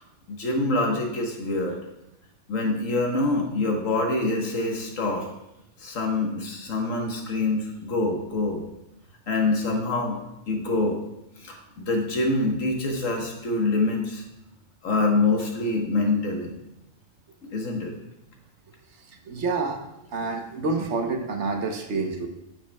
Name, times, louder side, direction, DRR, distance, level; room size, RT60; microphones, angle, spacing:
voice 1, 0.3-1.8 2.5-5.3 5.8-8.6 9.3-10.2 10.5-11.0 11.4-14.2 14.8-16.5 17.4-17.9, left 2 dB, 85° left, 1 dB, 1.6 m, -25 dB
voice 2, 19.3-19.8 20.1-22.3, right 3 dB, 65° right, 4 dB, 1.1 m, -28 dB
8.8 x 7.4 x 2.2 m, 0.87 s
omnidirectional pair, 1.3 m